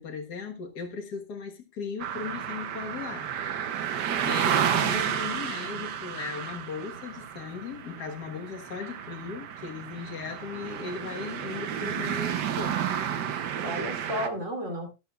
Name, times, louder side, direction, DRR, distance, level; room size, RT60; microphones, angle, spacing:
voice 1, 0.0-3.3 4.2-12.8 13.3-13.5, left 5 dB, 70° left, 2.1 m, -37 dB
sound 1, 2.0-14.3, right 9 dB, 75° right, 1.5 m, -31 dB
voice 2, 13.6-14.9, equal, 45° right, 3.5 m, -33 dB
14.0 x 12.0 x 2.4 m
omnidirectional pair, 1.8 m